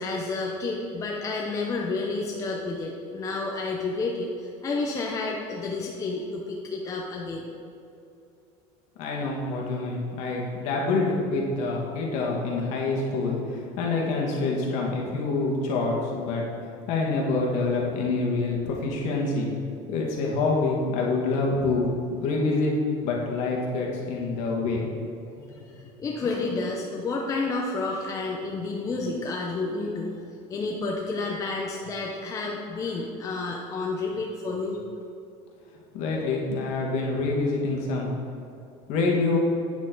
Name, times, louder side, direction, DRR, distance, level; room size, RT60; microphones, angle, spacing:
voice 1, 0.0-7.5 25.4-30.2 30.5-34.8, left 3 dB, 25° left, -1 dB, 0.8 m, -30 dB
voice 2, 9.0-16.4 16.9-19.5 19.9-22.7 23.0-24.8 35.9-38.1 38.9-39.4, left 3 dB, 60° left, -1 dB, 1.9 m, -26 dB
8.8 x 7.2 x 4.0 m, 2.6 s
cardioid pair, 150°, 14 cm